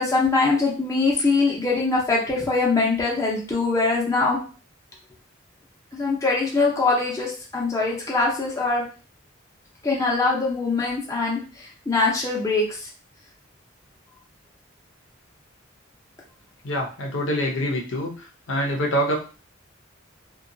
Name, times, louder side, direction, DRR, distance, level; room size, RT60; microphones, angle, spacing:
voice 1, 0.0-4.4 5.9-8.8 9.8-11.4 11.9-12.7, left 3 dB, 15° left, -4 dB, 0.6 m, -22 dB
voice 2, 16.6-18.1 18.5-19.2, equal, 70° left, 0 dB, 0.6 m, -25 dB
2.7 x 2.3 x 2.6 m, 0.37 s
head